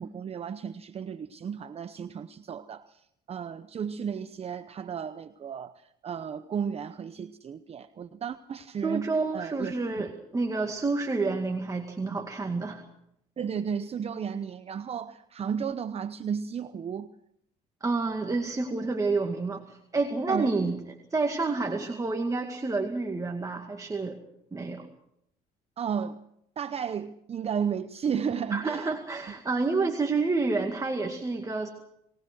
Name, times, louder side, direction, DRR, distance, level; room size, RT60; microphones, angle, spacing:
voice 1, 0.0-10.0 13.4-17.1 20.3-20.5 25.8-26.2 26.6-28.9, right 7 dB, 35° right, 11 dB, 0.8 m, -34 dB
voice 2, 8.8-12.8 17.8-20.8 21.1-24.2 24.5-24.9 28.5-31.7, right 3 dB, 20° right, 3 dB, 2.2 m, -29 dB
23.5 x 18.5 x 6.2 m, 0.76 s
cardioid pair, 110°, 17 cm